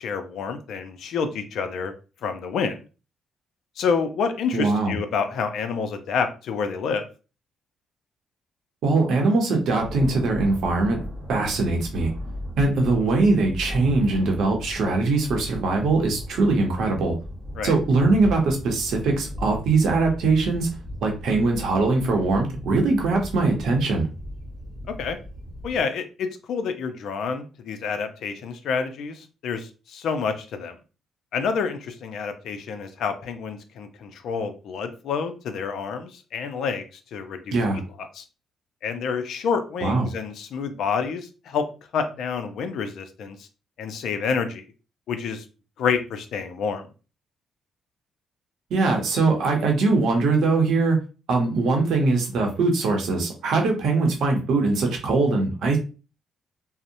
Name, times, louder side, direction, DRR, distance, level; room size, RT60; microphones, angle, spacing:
voice 1, 0.0-1.9 2.2-2.8 3.8-7.1 17.6-17.7 24.9-25.2 25.6-30.8 31.3-36.9 37.1-37.6 38.0-38.2 38.8-41.7 41.9-43.5 43.8-44.6 45.1-45.4 45.8-46.9, left 5 dB, 75° left, 8 dB, 0.4 m, -28 dB
voice 2, 4.5-4.9 8.8-11.0 11.3-12.1 12.6-17.2 17.6-20.7 21.0-24.1 37.5-37.8 39.8-40.1 48.7-51.0 51.3-55.8, right 3 dB, 75° right, 2 dB, 0.7 m, -21 dB
Thunder, 9.8-25.8, left 1 dB, 10° right, 1.1 m, -36 dB
2.7 x 2.0 x 2.6 m, 0.34 s
cardioid pair, 90°, 0 cm